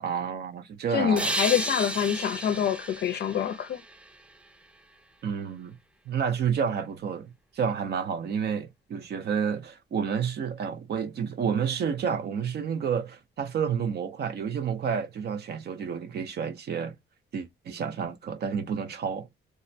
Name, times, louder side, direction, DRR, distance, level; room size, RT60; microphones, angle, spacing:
voice 1, 0.0-1.4 5.2-5.8 6.1-17.0 17.3-19.3, right 7 dB, 55° right, 0.6 m, -30 dB
voice 2, 0.9-3.8, left 8 dB, 55° left, 0.5 m, -26 dB
sound 1, 1.2-4.7, right 1 dB, 5° right, 0.3 m, -33 dB
2.3 x 2.1 x 2.6 m
cardioid pair, 90°, 20 cm